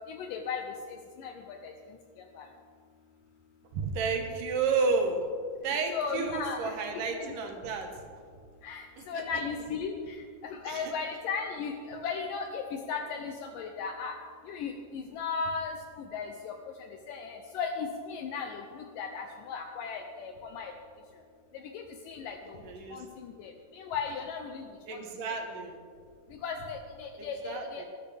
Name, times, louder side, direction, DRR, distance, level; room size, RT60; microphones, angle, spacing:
voice 1, 0.1-1.7 2.4-2.5 5.9-7.4 8.6-14.2 14.4-20.7 21.5-22.6 22.9-25.3 26.3-27.9, left 5 dB, 75° left, 4 dB, 2.2 m, -37 dB
voice 2, 3.7-5.2 5.6-8.0 9.0-9.2 10.6-10.9 22.6-23.0 24.9-25.8 27.2-27.9, right 4 dB, 70° right, 3 dB, 2.6 m, -31 dB
19.5 x 10.5 x 3.4 m, 2.1 s
omnidirectional pair, 4.2 m